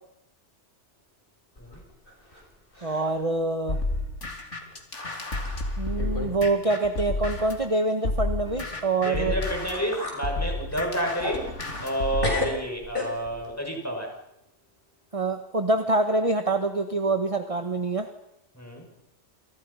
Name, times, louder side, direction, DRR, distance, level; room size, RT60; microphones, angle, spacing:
sound 1, 1.6-2.5 2.7-3.2 3.7-3.8 4.6-4.7 5.5-5.6 6.0-6.4 6.6-6.8 9.3-9.4 9.7-10.2 10.7-12.0 12.2-13.5, left 2 dB, 45° left, 6.9 m, -33 dB
voice 1, 2.8-3.8 5.8-9.3 15.1-18.1, right 2 dB, 30° right, 7 dB, 1.5 m, -25 dB
sound 2, 3.7-7.7 8.0-12.4, left 2 dB, 75° left, 3.9 m, -31 dB
voice 2, 9.0-11.5 11.8-14.2 18.5-18.9, right 1 dB, 10° left, 0 dB, 6.8 m, -30 dB
29.5 x 28.5 x 5.8 m, 0.86 s
omnidirectional pair, 1.2 m